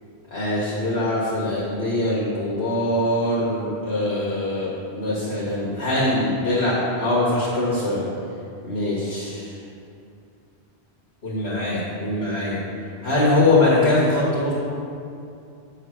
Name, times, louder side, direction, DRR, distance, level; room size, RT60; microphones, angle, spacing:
voice 1, 0.3-8.0 8.6-9.6 11.2-12.6 13.0-14.5, left 2 dB, 70° left, -8 dB, 1.8 m, -22 dB
8.7 x 4.0 x 6.3 m, 2.5 s
omnidirectional pair, 1.1 m